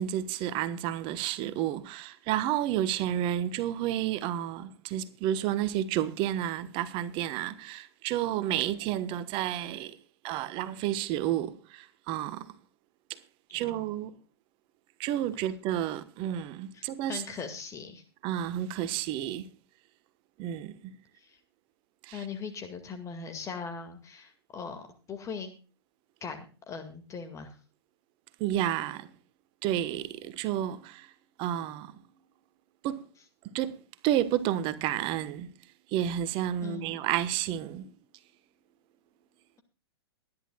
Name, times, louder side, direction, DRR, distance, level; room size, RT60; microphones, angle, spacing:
voice 1, 0.0-10.0 10.2-12.5 13.5-14.1 15.0-17.2 18.2-19.5 20.4-20.9 22.0-22.2 28.4-29.1 29.6-31.1 31.4-31.9 32.8-33.0 33.5-33.7 34.0-35.5 35.9-37.9, right 11 dB, 40° right, 1.3 m, -31 dB
voice 2, 16.7-18.0 21.2-21.4 22.1-25.5 26.2-27.6 36.6-37.0, left 5 dB, 20° left, 2.1 m, -40 dB
22.5 x 11.0 x 2.3 m
figure-of-eight pair, 110°, 14 cm